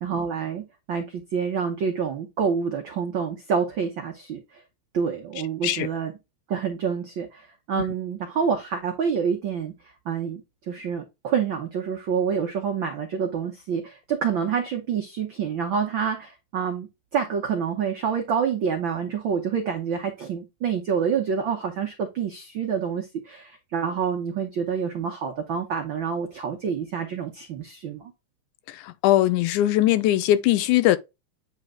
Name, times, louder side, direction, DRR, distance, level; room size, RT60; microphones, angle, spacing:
voice 1, 0.0-4.6 4.9-6.1 6.5-9.7 10.0-28.1, right 6 dB, 75° right, 1.1 m, -27 dB
voice 2, 28.7-31.0, left 13 dB, 85° left, 2.1 m, -20 dB
8.9 x 3.2 x 3.7 m
omnidirectional pair, 3.6 m